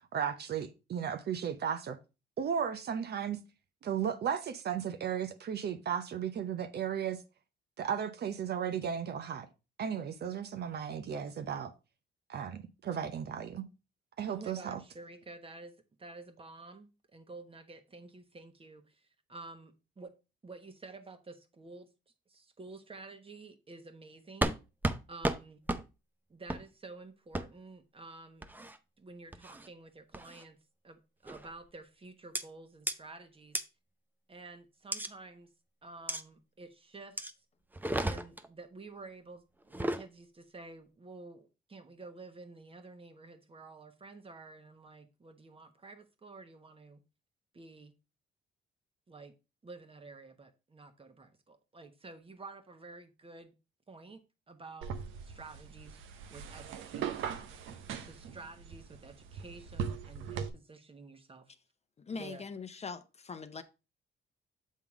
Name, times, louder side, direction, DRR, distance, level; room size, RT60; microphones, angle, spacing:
voice 1, 0.1-2.0 2.4-3.4 3.8-7.2 7.8-9.5 9.8-11.7 12.3-13.7 14.2-14.8, right 8 dB, 55° right, 0.7 m, -35 dB
voice 2, 14.3-15.7 16.0-20.1 20.4-21.9 22.3-24.6 25.1-25.6 26.3-28.5 29.0-30.6 30.8-33.6 34.3-35.5 35.8-37.2 38.0-47.0 47.5-47.9 49.1-49.3 49.6-53.5 53.9-54.9 55.2-56.0 56.3-57.5 58.0-61.5 62.1-62.5, right 3 dB, 30° right, 1.2 m, -50 dB
sound 1, 24.4-24.6 24.8-25.0 25.2-25.4 25.7-25.8 26.5-26.6 27.3-27.5 28.4-28.8 29.3-29.7 30.1-30.4 31.3-31.5 32.4-32.5 32.9-33.0 33.6-33.7 34.9-35.1 36.1-36.2 37.2-37.3 37.7-38.5 39.6-40.0, right 1 dB, 10° right, 0.5 m, -33 dB
sound 2, 54.8-60.5, right 7 dB, 90° right, 0.8 m, -40 dB
voice 3, 62.0-63.6, left 5 dB, 35° left, 0.6 m, -42 dB
7.4 x 3.6 x 4.7 m
cardioid pair, 90°, 20 cm